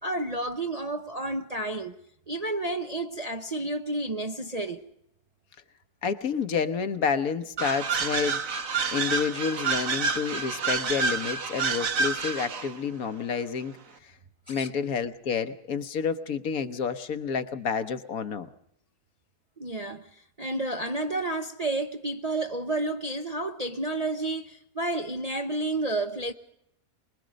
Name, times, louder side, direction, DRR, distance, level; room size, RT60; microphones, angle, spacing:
voice 1, 0.0-1.9 2.3-4.8 14.5-14.7 19.6-26.3, right 2 dB, 35° right, 0.6 m, -31 dB
voice 2, 6.0-8.4 8.9-13.8 14.5-18.5, left 6 dB, 65° left, 1.4 m, -29 dB
sound 1, 7.6-12.7, right 5 dB, 60° right, 1.6 m, -28 dB
24.5 x 21.5 x 5.1 m
omnidirectional pair, 1.7 m